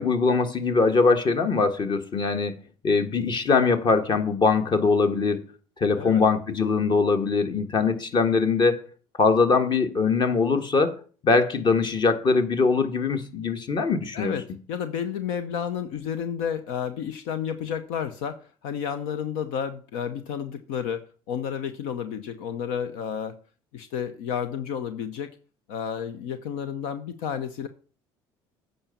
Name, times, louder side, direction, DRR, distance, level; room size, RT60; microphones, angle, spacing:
voice 1, 0.0-5.5 5.8-8.9 9.2-11.0 11.2-14.3, left 4 dB, 40° left, 1.6 m, -22 dB
voice 2, 14.1-23.4 23.7-25.3 25.7-27.7, left 8 dB, 80° left, 0.8 m, -31 dB
8.8 x 5.5 x 7.0 m
supercardioid pair, 85°, 12 cm